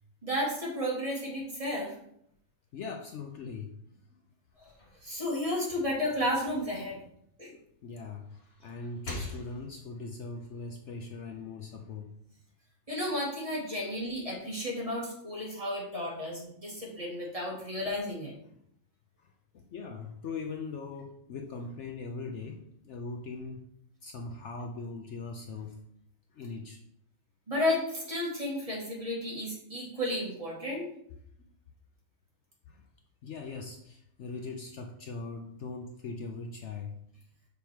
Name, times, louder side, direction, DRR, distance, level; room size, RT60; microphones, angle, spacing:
voice 1, 0.2-2.0 4.6-4.7 5.0-7.0 7.4-7.5 12.9-18.3 27.5-30.8, left 1 dB, 25° right, -4 dB, 2.2 m, -32 dB
voice 2, 2.7-3.7 4.1-4.2 7.8-12.1 19.2-23.7 24.0-25.8 26.3-26.8 32.7-32.8 33.2-37.0, left 4 dB, 65° left, 3 dB, 0.9 m, -40 dB
sound 1, 4.5-7.7 8.1-9.9, left 2 dB, 45° left, 1.9 m, -46 dB
6.2 x 5.2 x 4.6 m, 0.72 s
omnidirectional pair, 1.5 m